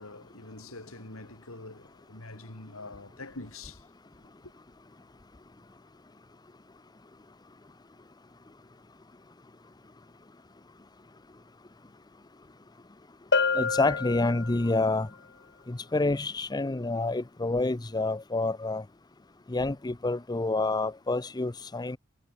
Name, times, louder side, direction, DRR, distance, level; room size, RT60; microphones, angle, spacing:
voice 1, 0.0-3.8, left 2 dB, 85° left, 4.0 m, -45 dB
Bell, 13.3-14.9, left 4 dB, 55° left, 4.3 m, -28 dB
voice 2, 13.5-15.1 15.7-18.8 19.5-22.0, left 2 dB, 20° left, 0.6 m, -28 dB
head